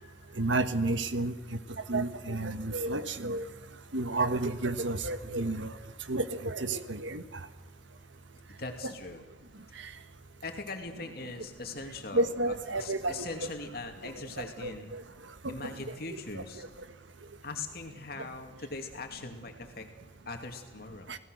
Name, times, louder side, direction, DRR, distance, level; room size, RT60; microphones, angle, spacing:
voice 1, 0.4-1.3 1.9-3.5 3.9-5.7 6.1-7.2 8.8-8.9 12.1-13.5 14.6-15.0 15.4-15.9 16.3-16.4 21.1-21.2, right 2 dB, 75° right, 10 dB, 1.4 m, -31 dB
voice 2, 8.6-9.2 10.4-12.3 12.8-14.9 15.5-16.6 17.4-19.9 20.3-21.2, left 3 dB, 50° left, 5 dB, 2.7 m, -41 dB
28.5 x 17.5 x 6.5 m, 1.2 s
head